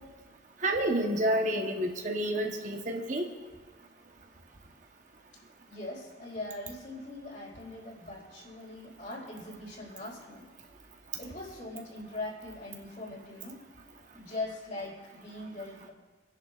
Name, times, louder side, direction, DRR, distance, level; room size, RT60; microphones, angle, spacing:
voice 1, 0.6-3.3, right 1 dB, 45° right, 2 dB, 1.0 m, -29 dB
voice 2, 5.7-10.5 11.2-13.7 14.1-15.9, left 2 dB, 45° left, -4 dB, 4.7 m, -41 dB
26.5 x 10.5 x 2.5 m, 1.3 s
head